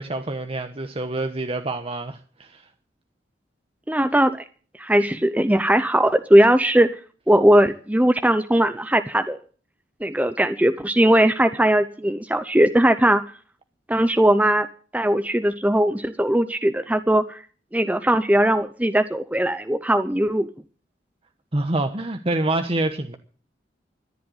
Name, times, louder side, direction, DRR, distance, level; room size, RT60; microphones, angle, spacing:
voice 1, 0.0-2.6 21.5-23.2, right 2 dB, 35° right, 1.1 m, -26 dB
voice 2, 3.9-4.4 4.8-6.9 7.3-9.4 10.0-13.2 13.9-14.7 14.9-17.4 17.7-20.5, right 1 dB, 10° right, 0.8 m, -19 dB
14.0 x 11.0 x 7.9 m
head